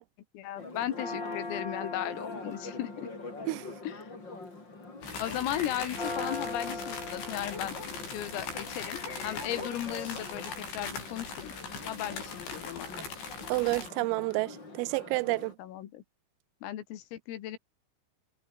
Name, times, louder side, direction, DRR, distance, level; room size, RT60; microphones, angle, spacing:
voice 1, 0.3-3.1 3.8-4.1 5.2-11.5 11.9-12.9 15.6-16.0 16.6-17.6, left 12 dB, 80° left, 4.8 m, -36 dB
Church bell, 0.6-15.5, left 3 dB, 20° left, 5.6 m, -41 dB
sound 1, 5.0-13.9, left 5 dB, 60° left, 9.8 m, -40 dB
voice 2, 13.5-15.5, right 23 dB, 85° right, 3.2 m, -29 dB
omnidirectional pair, 5.9 m